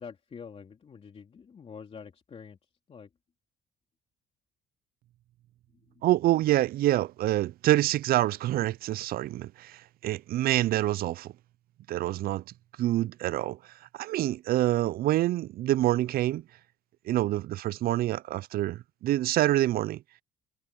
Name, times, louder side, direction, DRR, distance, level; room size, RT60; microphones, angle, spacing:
voice 1, 0.0-3.1 5.7-6.0, left 6 dB, 35° left, 3.0 m, -47 dB
voice 2, 6.0-11.3 11.9-12.4 12.8-13.6 13.9-16.4 17.1-20.0, right 15 dB, 60° right, 0.5 m, -26 dB
cardioid pair, 110°, 17 cm